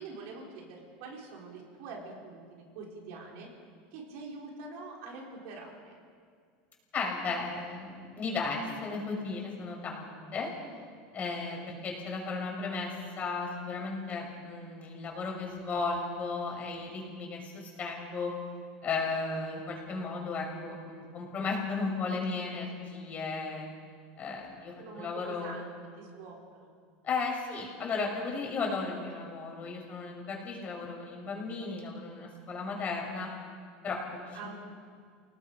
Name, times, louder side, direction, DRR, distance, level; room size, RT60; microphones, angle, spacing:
voice 1, 0.0-3.5 3.9-6.0 24.8-26.7 34.3-34.5, right 3 dB, 65° right, -2 dB, 5.8 m, -45 dB
voice 2, 6.9-10.5 11.1-18.3 18.8-23.7 24.2-25.6 27.0-33.3 33.8-34.5, left 4 dB, 30° left, 0 dB, 6.1 m, -35 dB
29.5 x 19.0 x 5.3 m, 2.1 s
supercardioid pair, 130°, 5 cm